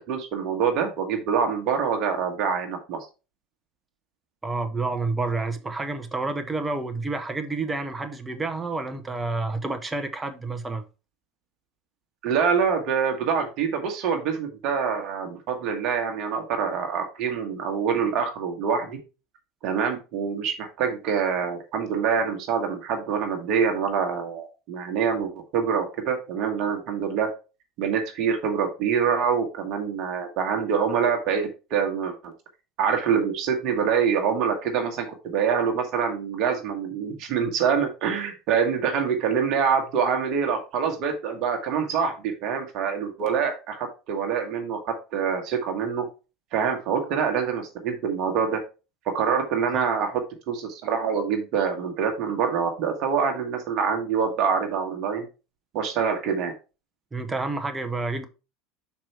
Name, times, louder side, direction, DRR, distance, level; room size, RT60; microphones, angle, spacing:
voice 1, 0.1-3.0 12.2-19.0 19.6-27.3 27.8-32.3 32.8-46.1 46.5-48.6 49.1-50.1 50.5-55.3 55.7-56.5, right 6 dB, 55° right, 1.5 m, -25 dB
voice 2, 4.4-10.8 49.7-49.8 57.1-58.3, right 3 dB, 20° right, 1.1 m, -29 dB
5.9 x 4.6 x 4.5 m
figure-of-eight pair, 75°, 0 cm